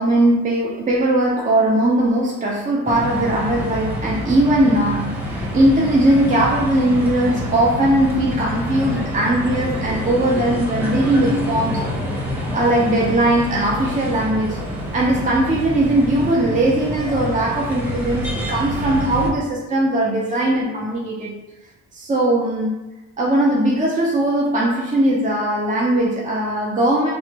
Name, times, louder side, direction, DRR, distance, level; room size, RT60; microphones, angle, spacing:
voice 1, 0.0-12.0 12.3-14.6 14.9-21.4 21.9-22.7 23.2-27.1, right 1 dB, 25° right, -4 dB, 0.5 m, -19 dB
sound 1, 2.8-19.3, equal, 5° right, 0.8 m, -27 dB
3.2 x 2.1 x 2.9 m, 1.0 s
cardioid pair, 90°, 30 cm